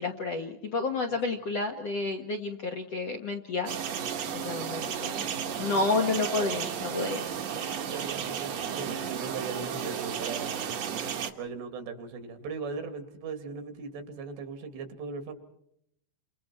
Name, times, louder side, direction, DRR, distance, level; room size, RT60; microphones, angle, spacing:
voice 1, 0.0-3.7 4.3-5.2 5.6-7.2, left 3 dB, 60° left, 3 dB, 1.7 m, -30 dB
voice 2, 1.1-1.4 7.6-10.6 11.4-15.3, right 5 dB, 75° right, 7 dB, 4.6 m, -38 dB
sound 1, 3.7-11.3, right 8 dB, 55° right, 2.0 m, -33 dB
30.0 x 26.5 x 4.4 m, 0.74 s
omnidirectional pair, 5.0 m